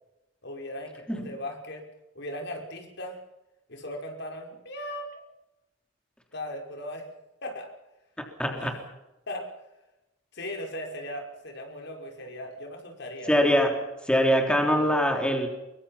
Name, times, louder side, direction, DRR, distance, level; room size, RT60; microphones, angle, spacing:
voice 1, 0.4-1.9 2.1-3.2 3.7-5.2 6.3-7.1 7.4-7.7 8.4-8.7 9.3-9.5 10.3-13.5, left 1 dB, 65° left, 3 dB, 5.5 m, -38 dB
voice 2, 8.4-8.7 13.3-13.8 14.0-15.5, equal, 5° left, 3 dB, 3.4 m, -23 dB
24.5 x 23.0 x 5.8 m, 0.95 s
head